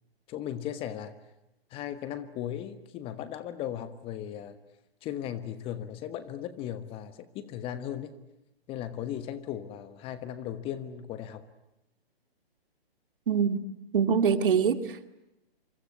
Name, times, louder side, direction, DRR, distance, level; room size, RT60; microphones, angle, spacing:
voice 1, 0.3-1.1 1.7-4.6 5.0-8.1 8.7-11.4, left 10 dB, 20° left, 13 dB, 1.2 m, -37 dB
voice 2, 13.3-13.6 13.9-15.1, right 7 dB, 60° right, 10 dB, 2.4 m, -24 dB
27.0 x 25.0 x 8.3 m, 0.86 s
hypercardioid pair, 140°, 31 cm